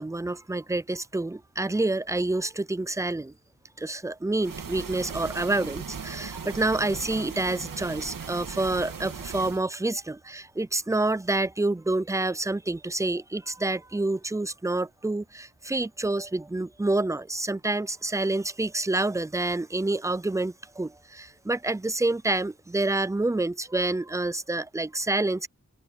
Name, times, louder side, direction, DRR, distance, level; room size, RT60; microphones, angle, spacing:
voice 1, 0.0-3.3 3.8-25.5, right 2 dB, 10° right, 0.5 m, -28 dB
sound 1, 4.4-9.6, right 6 dB, 75° right, 2.0 m, -38 dB
open air
wide cardioid pair, 85°, 33 cm